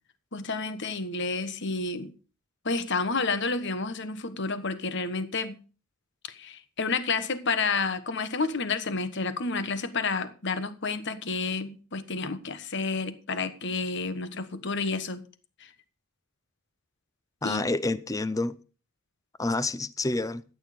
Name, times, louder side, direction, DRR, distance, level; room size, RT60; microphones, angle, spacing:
voice 1, 0.3-2.1 2.6-5.6 6.2-15.2 15.6-15.7 17.4-17.6, left 4 dB, 55° left, 1.2 m, -30 dB
voice 2, 17.4-18.6 19.4-20.4, left 2 dB, 15° left, 0.6 m, -28 dB
14.0 x 9.1 x 5.1 m
head